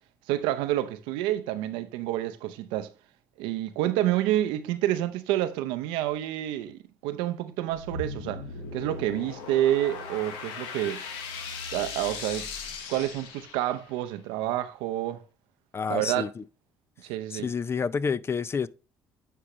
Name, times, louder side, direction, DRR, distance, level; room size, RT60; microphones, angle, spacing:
voice 1, 0.3-2.9 3.4-8.4 8.7-11.0 11.7-12.5 12.9-15.2 15.9-16.2 17.0-17.5, right 13 dB, 85° right, 0.6 m, -28 dB
sound 1, 7.7-14.0, left 4 dB, 85° left, 1.1 m, -38 dB
voice 2, 15.7-16.4 17.3-18.7, left 5 dB, 30° left, 0.4 m, -29 dB
10.0 x 4.7 x 3.0 m
supercardioid pair, 80°, 8 cm